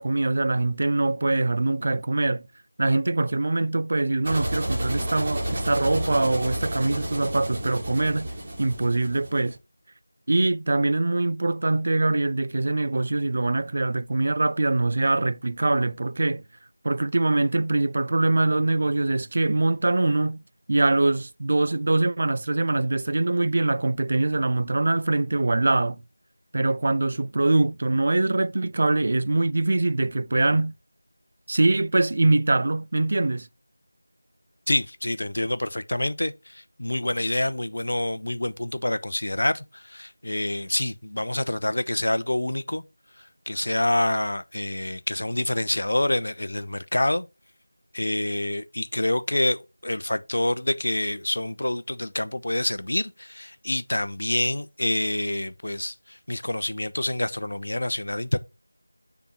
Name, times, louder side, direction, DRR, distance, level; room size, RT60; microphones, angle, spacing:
voice 1, 0.0-2.5 2.8-8.3 8.6-9.6 10.3-16.4 16.8-20.4 20.7-26.0 26.5-30.7 31.5-33.5, right 2 dB, 40° right, 0.3 m, -23 dB
sound 1, 4.2-9.5, right 1 dB, 20° right, 2.0 m, -31 dB
voice 2, 34.7-42.8 43.2-47.3 47.9-58.4, left 1 dB, 60° left, 0.7 m, -27 dB
6.9 x 3.6 x 5.9 m
figure-of-eight pair, 170°, 0 cm